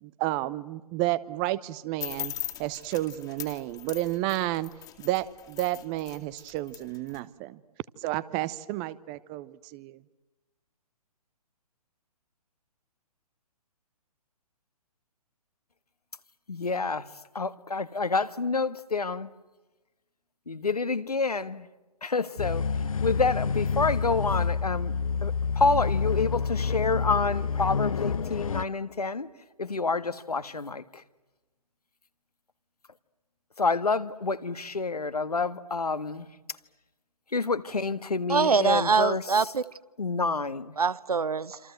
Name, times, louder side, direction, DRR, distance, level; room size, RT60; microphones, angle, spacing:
voice 1, 0.0-2.3 2.6-4.7 5.0-7.6 8.0-10.0, right 16 dB, 20° right, 0.9 m, -31 dB
sound 1, 2.0-7.2, left 13 dB, 15° left, 2.3 m, -39 dB
voice 2, 16.5-17.1 17.4-19.3 20.5-21.7 22.0-22.7 23.0-24.9 25.2-29.3 29.6-31.0 33.6-36.3 37.3-39.2 40.0-40.8, left 4 dB, 75° left, 1.7 m, -28 dB
sound 2, 22.4-28.6, left 5 dB, 60° left, 1.1 m, -28 dB
voice 3, 38.3-39.6 40.8-41.6, right 5 dB, 70° right, 1.1 m, -24 dB
27.5 x 27.5 x 7.8 m
figure-of-eight pair, 130°, 20 cm